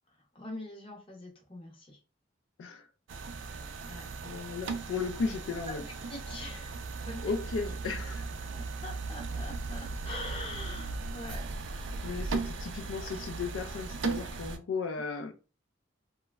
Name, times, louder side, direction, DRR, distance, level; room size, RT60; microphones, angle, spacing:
voice 1, 0.1-2.0 3.8-4.1 5.7-5.8 6.1-6.7 7.0-7.5 8.5-11.5, left 1 dB, 25° left, 0.7 m, -43 dB
sound 1, 3.1-14.6, right 3 dB, 70° right, 0.4 m, -37 dB
voice 2, 3.8-5.8 7.2-8.5 12.0-15.3, left 4 dB, 80° left, 0.4 m, -36 dB
3.0 x 2.2 x 2.2 m
head